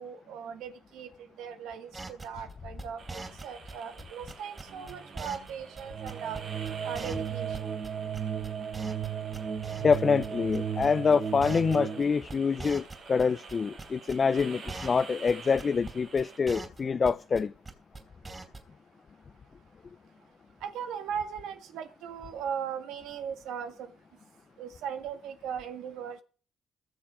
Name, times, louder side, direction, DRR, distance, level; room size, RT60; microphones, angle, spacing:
voice 1, 0.0-6.4 6.8-7.7 20.6-23.9 24.6-26.2, right 8 dB, 90° right, 1.8 m, -38 dB
sound 1, 1.9-5.5 5.8-5.9 6.1-6.4 6.6-6.7 6.9-7.9 8.1-9.1 9.3-10.0 10.2-10.3 10.5-10.9 11.1-11.2 11.4-12.0 12.3-13.5 13.8-15.0 15.3-15.4 15.6-17.4 17.7-18.0 18.2-18.6, right 3 dB, 25° right, 4.1 m, -41 dB
sound 2, 3.0-16.4, right 5 dB, 70° right, 4.5 m, -49 dB
sound 3, 4.7-12.0, right 8 dB, 55° right, 6.2 m, -35 dB
voice 2, 9.8-17.5, left 5 dB, 40° left, 0.5 m, -26 dB
20.5 x 7.3 x 4.9 m
cardioid pair, 90°, 0 cm